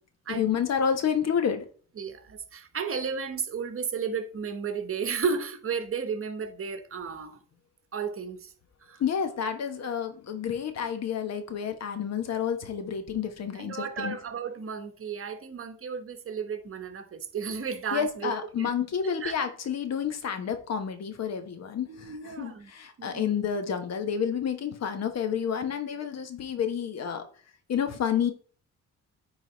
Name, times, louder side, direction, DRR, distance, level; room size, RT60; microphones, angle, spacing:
voice 1, 0.3-1.6 9.0-14.2 17.9-27.2 27.7-28.3, left 7 dB, 60° left, 1.3 m, -29 dB
voice 2, 2.0-7.4 7.9-8.5 8.8-9.0 13.5-18.7 19.2-19.4 21.9-22.7 23.0-23.4, right 6 dB, 45° right, 1.2 m, -33 dB
9.5 x 4.0 x 4.0 m
cardioid pair, 90°, 30 cm